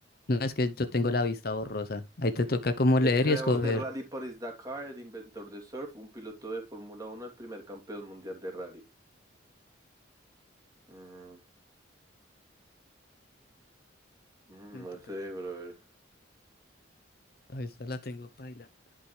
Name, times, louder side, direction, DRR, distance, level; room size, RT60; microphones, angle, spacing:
voice 1, 0.3-3.8 14.7-14.8 17.5-18.7, left 2 dB, 50° left, 0.8 m, -28 dB
voice 2, 3.0-8.8 10.9-11.4 14.5-15.7, right 1 dB, 20° right, 2.8 m, -39 dB
11.5 x 5.5 x 3.3 m
head